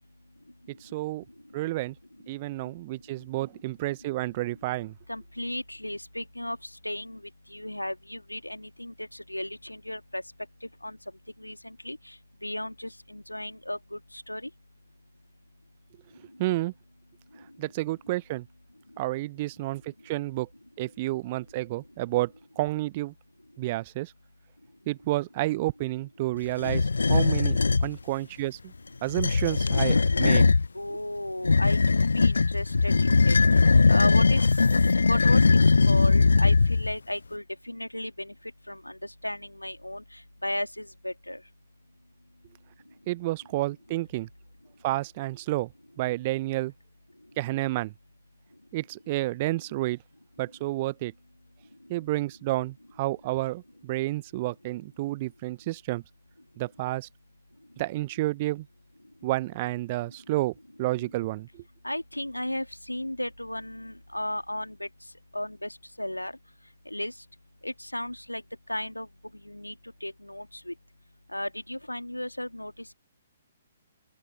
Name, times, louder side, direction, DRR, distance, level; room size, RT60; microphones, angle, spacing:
voice 1, 0.8-1.2 1.5-1.9 2.3-4.9 16.4-16.7 17.6-18.4 19.0-20.5 20.8-23.1 23.6-24.1 24.9-28.6 29.0-30.4 43.1-44.3 44.8-45.7 46.0-46.7 47.4-47.9 48.7-50.0 50.4-51.1 51.9-56.0 56.6-57.1 57.8-58.6 59.2-61.5, right 18 dB, 35° right, 0.7 m, -30 dB
voice 2, 5.1-6.6 6.8-7.2 7.5-10.2 10.8-11.0 11.4-12.0 12.4-14.0 14.3-14.5 30.7-33.4 33.9-34.4 35.1-38.3 38.7-39.0 39.2-40.0 40.4-41.4 61.8-64.9 65.3-66.3 66.9-67.1 67.6-68.4 68.7-69.1 69.5-69.7 70.0-70.7 71.3-72.9, left 1 dB, 90° left, 2.3 m, -34 dB
sound 1, 26.6-27.9 29.0-30.7 31.4-37.0, left 4 dB, 70° left, 0.6 m, -20 dB
open air
figure-of-eight pair, 130°, 0 cm